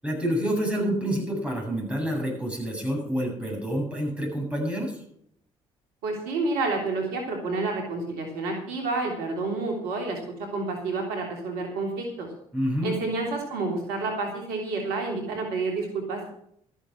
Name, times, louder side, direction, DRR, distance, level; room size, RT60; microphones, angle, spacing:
voice 1, 0.0-5.0 12.5-13.0, equal, 5° right, 0 dB, 8.0 m, -28 dB
voice 2, 6.0-10.2 10.5-12.3 12.8-16.3, right 3 dB, 75° right, 2 dB, 3.2 m, -29 dB
13.5 x 10.0 x 6.2 m, 0.67 s
hypercardioid pair, 55°, 16 cm